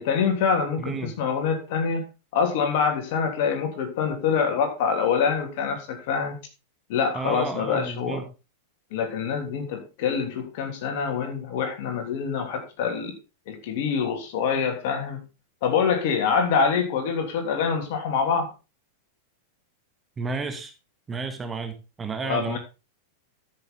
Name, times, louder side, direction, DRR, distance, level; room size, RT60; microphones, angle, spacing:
voice 1, 0.0-2.0 2.3-6.4 6.9-8.2 8.9-13.2 13.5-15.2 15.6-18.5 22.2-22.6, left 6 dB, 50° left, 4 dB, 3.0 m, -25 dB
voice 2, 0.8-1.1 7.1-8.2 20.2-20.7 21.1-22.6, right 4 dB, 15° right, 9 dB, 1.4 m, -31 dB
13.5 x 6.7 x 3.9 m, 0.30 s
figure-of-eight pair, 90°, 0 cm